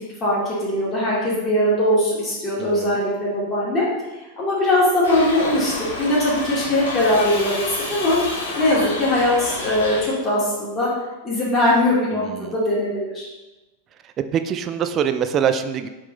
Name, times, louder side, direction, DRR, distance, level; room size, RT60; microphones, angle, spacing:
voice 1, 0.2-3.9 4.4-8.2 8.5-10.9 11.2-13.3, left 1 dB, 25° left, -7 dB, 2.2 m, -20 dB
voice 2, 2.6-3.0 12.1-12.5 14.3-15.9, right 8 dB, 30° right, 10 dB, 0.4 m, -24 dB
Shout / Livestock farm animals working animals, 5.0-10.0, left 2 dB, 65° left, 1.6 m, -30 dB
7.5 x 3.8 x 3.9 m, 1.1 s
figure-of-eight pair, 90°, 0 cm